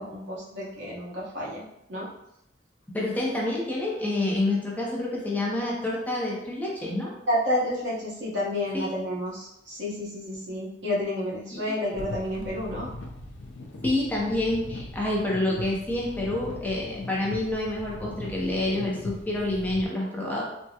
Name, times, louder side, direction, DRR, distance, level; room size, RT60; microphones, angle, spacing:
voice 1, 0.0-1.6 1.9-2.1 7.3-12.9, left 1 dB, 80° right, -7 dB, 1.1 m, -30 dB
voice 2, 2.9-7.1 8.7-8.9 11.5-11.6 13.8-20.4, left 2 dB, 10° left, -4 dB, 0.5 m, -28 dB
sound 1, 11.9-19.9, left 2 dB, 80° left, 0.5 m, -40 dB
3.4 x 2.1 x 2.7 m, 0.84 s
head